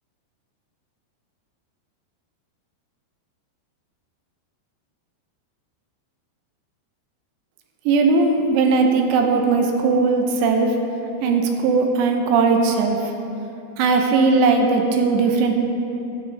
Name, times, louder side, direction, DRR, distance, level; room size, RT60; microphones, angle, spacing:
voice 1, 7.9-10.8 11.2-13.0 13.8-15.5, right 4 dB, 80° right, 3 dB, 2.8 m, -18 dB
13.5 x 8.0 x 3.4 m, 2.9 s
omnidirectional pair, 5.2 m